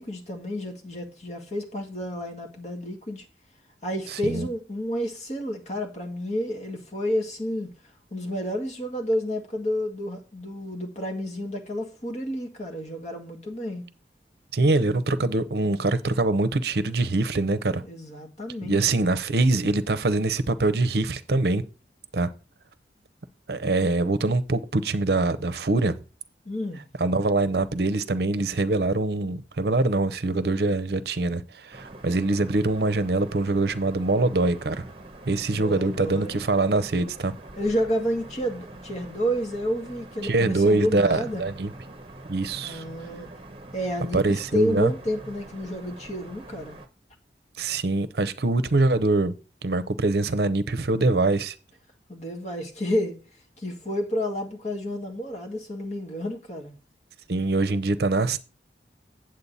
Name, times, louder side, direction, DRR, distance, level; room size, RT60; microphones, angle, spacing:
voice 1, 0.0-3.3 3.8-7.7 8.1-13.8 17.8-19.1 26.5-26.8 35.5-36.4 37.6-41.4 42.6-43.3 43.7-46.8 52.1-53.2 53.6-56.7, equal, 40° left, 1.9 m, -30 dB
voice 2, 14.5-17.8 18.7-21.6 22.1-22.3 23.5-25.9 27.0-34.9 35.3-37.3 40.2-41.7 42.3-42.8 44.1-44.9 47.6-49.3 49.6-51.5 57.3-58.4, right 2 dB, 65° right, 0.7 m, -24 dB
sound 1, 31.7-46.9, right 2 dB, 30° right, 1.0 m, -44 dB
8.6 x 7.7 x 4.0 m
head